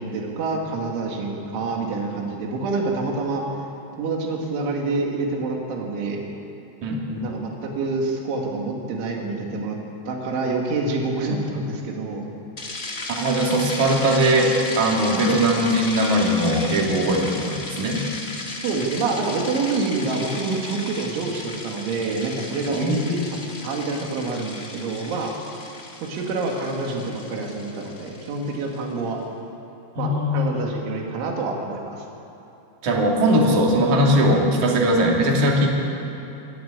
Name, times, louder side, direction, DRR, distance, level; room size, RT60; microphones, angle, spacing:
voice 1, 0.0-3.4 4.0-6.2 7.2-9.8 10.1-12.3 18.6-23.2 23.6-25.3 26.0-29.2 30.0-32.0, right 3 dB, 80° right, 0 dB, 4.7 m, -27 dB
voice 2, 6.8-7.3 13.1-18.0 22.7-23.0 30.0-30.4 32.8-35.7, right 1 dB, 45° right, -1 dB, 3.6 m, -20 dB
sound 1, 12.6-28.8, left 2 dB, 55° left, 0.8 m, -35 dB
25.5 x 13.0 x 9.0 m, 2.9 s
omnidirectional pair, 5.3 m